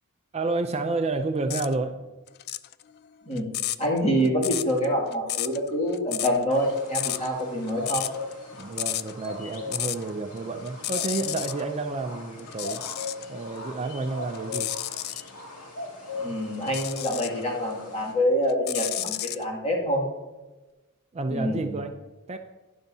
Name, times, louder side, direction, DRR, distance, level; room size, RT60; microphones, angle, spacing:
voice 1, 0.3-2.0 8.6-12.8 13.3-14.7 21.1-22.0 22.3-22.4, right 3 dB, 30° right, 6 dB, 0.4 m, -30 dB
sound 1, 1.5-1.7 2.3-10.1 10.4-11.6 12.4-13.3 13.8-15.3 16.6-17.4 17.9-19.4, left 13 dB, 45° left, 0.3 m, -32 dB
voice 2, 3.8-8.1 16.1-20.0 21.3-21.7, equal, 30° left, -2 dB, 2.3 m, -26 dB
sound 2, 6.5-18.1, left 3 dB, 80° left, 2.1 m, -39 dB
12.5 x 10.5 x 2.7 m, 1.2 s
head